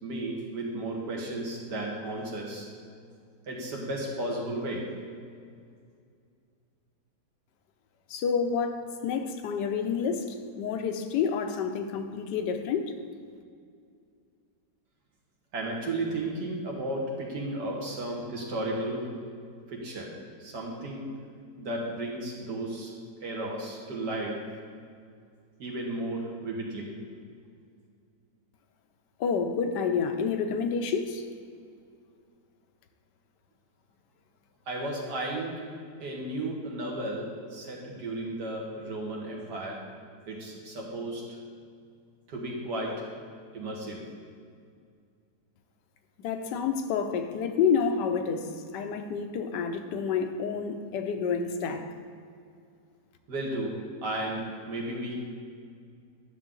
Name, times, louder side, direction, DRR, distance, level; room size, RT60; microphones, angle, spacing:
voice 1, 0.0-2.7 3.5-5.0 15.5-19.2 19.7-20.1 20.4-21.3 21.6-22.9 23.2-24.4 25.6-27.0 34.7-35.7 36.0-39.8 40.3-41.4 42.3-43.1 43.5-44.1 53.3-55.2, right 1 dB, 75° right, -2 dB, 2.1 m, -34 dB
voice 2, 8.1-12.9 29.2-31.2 46.2-51.9, left 6 dB, 80° left, 6 dB, 1.3 m, -29 dB
11.0 x 6.5 x 3.8 m, 2.2 s
omnidirectional pair, 1.9 m